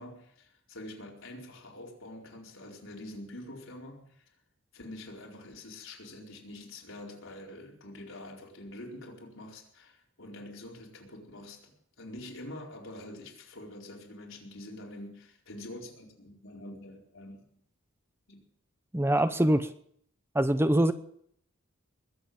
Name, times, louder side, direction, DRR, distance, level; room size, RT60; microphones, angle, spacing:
voice 1, 0.0-4.3 4.7-17.4 18.3-18.4 19.0-19.1, left 1 dB, 75° left, -1 dB, 4.5 m, -46 dB
voice 2, 18.9-19.7 20.3-20.9, right 1 dB, 10° right, 11 dB, 0.8 m, -24 dB
21.0 x 7.9 x 8.7 m, 0.65 s
head